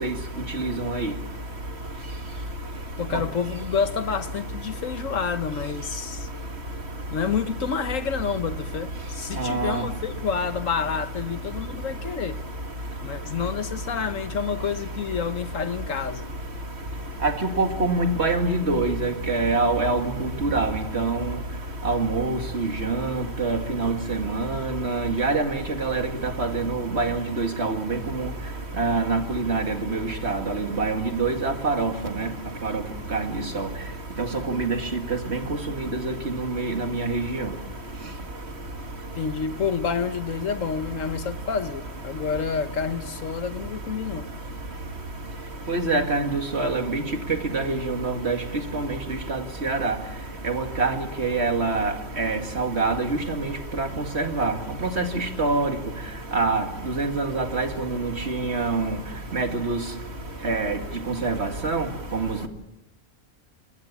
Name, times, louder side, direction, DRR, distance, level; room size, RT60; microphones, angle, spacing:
voice 1, 0.6-1.1 9.4-9.8 17.2-17.3 17.6-21.2 21.8-26.0 26.4-28.3 28.8-31.9 32.2-32.3 32.6-32.8 33.1-33.3 33.5-33.7 34.2-34.8 35.3-35.4 35.9-37.5 45.7-47.0 47.5-48.4 48.7-48.9 49.3-49.9 50.4-53.4 53.8-53.9 54.1-54.5 55.0-55.7 56.3-56.6 57.0-58.9 59.3-59.8 60.4-60.8 61.1-61.9 62.1-62.5, right 3 dB, 50° right, 2.3 m, -25 dB
voice 2, 3.0-6.3 7.1-12.4 13.0-16.4 39.1-44.2, left 6 dB, 65° left, 1.4 m, -28 dB
27.5 x 20.5 x 7.3 m
omnidirectional pair, 1.5 m